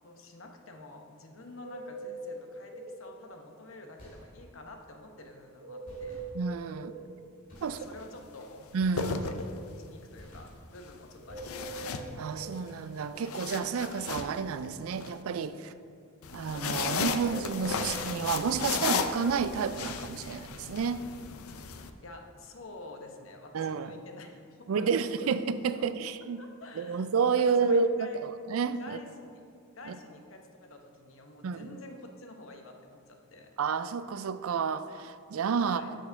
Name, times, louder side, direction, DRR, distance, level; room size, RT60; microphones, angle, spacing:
voice 1, 0.0-6.2 7.6-8.7 9.0-9.5 9.9-11.7 22.0-25.4 25.8-25.9 26.4-27.1 27.4-28.2 28.8-29.4 29.8-33.5 35.6-35.9, left 2 dB, 70° left, 4 dB, 0.9 m, -48 dB
sound 1, 1.6-3.0 5.6-7.0 11.2-12.6 17.2-18.6, right 2 dB, 60° right, 2.1 m, -42 dB
sound 2, 4.0-4.7 5.8-6.8 7.5-8.1 8.8-9.6 10.2-10.9 11.3-12.1, equal, 40° left, 2.3 m, -51 dB
voice 2, 6.3-6.9 7.6-7.8 8.7-9.2 12.2-15.7 16.3-21.1 23.5-23.9 24.7-26.4 26.8-29.0 29.9-30.0 31.4-31.7 33.6-36.0, right 5 dB, 80° right, 13 dB, 0.4 m, -30 dB
sound 3, 7.6-7.8 8.7-9.9 11.4-12.6 13.0-15.1 16.2-21.9, left 5 dB, 90° left, 0.6 m, -35 dB
6.7 x 6.3 x 5.8 m, 2.3 s
head